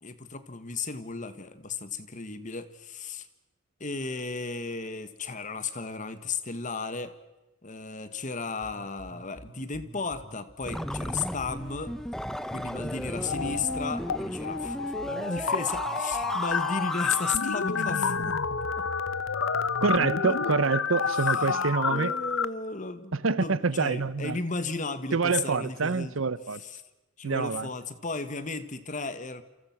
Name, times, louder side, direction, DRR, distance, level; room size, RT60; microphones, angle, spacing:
voice 1, 0.0-3.3 3.8-7.1 7.6-11.9 12.5-18.4 18.8-18.9 20.2-20.8 21.1-26.1 26.6-26.8 27.2-29.4, left 4 dB, 40° left, 1.5 m, -35 dB
sound 1, 8.6-16.6, right 1 dB, 30° right, 0.9 m, -48 dB
sound 2, 10.7-17.4, equal, ahead, 0.8 m, -34 dB
sound 3, 13.2-14.2 14.4-22.5, left 5 dB, 70° left, 0.9 m, -29 dB
voice 2, 19.8-22.1 23.1-24.4 25.1-26.6 27.2-27.7, right 4 dB, 70° right, 0.8 m, -26 dB
28.5 x 27.5 x 6.0 m
head